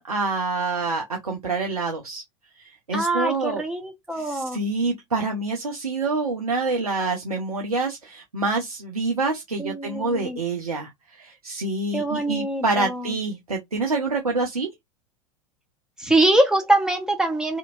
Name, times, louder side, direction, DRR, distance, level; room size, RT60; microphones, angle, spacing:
voice 1, 0.0-2.2 2.6-3.6 4.1-14.7, right 3 dB, 90° right, 0.6 m, -27 dB
voice 2, 2.9-4.6 9.6-10.4 11.9-13.0 16.0-17.6, right 2 dB, 5° right, 0.9 m, -23 dB
2.8 x 2.6 x 2.4 m
figure-of-eight pair, 85°, 18 cm